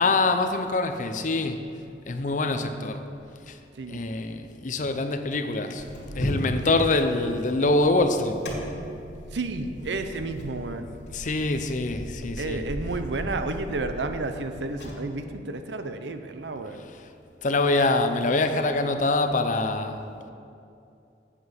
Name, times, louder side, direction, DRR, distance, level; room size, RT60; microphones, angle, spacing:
voice 1, 0.0-1.6 2.0-3.0 3.5-3.6 3.9-5.9 6.1-8.5 11.1-12.6 16.8-17.1 17.4-20.0, left 2 dB, 45° left, 8 dB, 0.6 m, -25 dB
voice 2, 3.7-4.1 6.7-6.8 9.3-10.9 12.4-16.8, right 3 dB, 80° right, 8 dB, 0.6 m, -31 dB
sound 1, 5.8-14.9, equal, 90° left, 2.1 m, -37 dB
8.0 x 7.7 x 5.9 m, 2.6 s
head